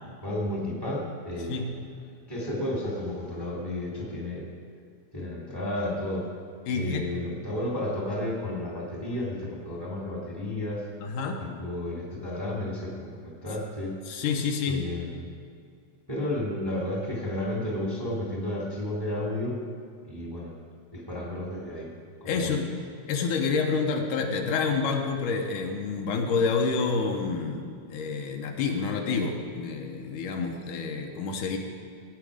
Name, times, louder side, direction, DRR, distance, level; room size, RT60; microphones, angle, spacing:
voice 1, 0.0-1.6 2.3-4.5 5.1-6.3 6.7-10.8 11.4-13.9 14.7-15.3 16.1-19.6 20.0-20.5 20.9-21.9 22.2-22.6, left 1 dB, 10° right, -3 dB, 1.9 m, -32 dB
voice 2, 6.7-7.1 11.0-11.4 14.1-14.9 22.3-22.7 23.1-27.6 27.9-31.6, left 4 dB, 80° left, 2 dB, 2.5 m, -28 dB
16.5 x 9.0 x 4.9 m, 2.4 s
omnidirectional pair, 3.7 m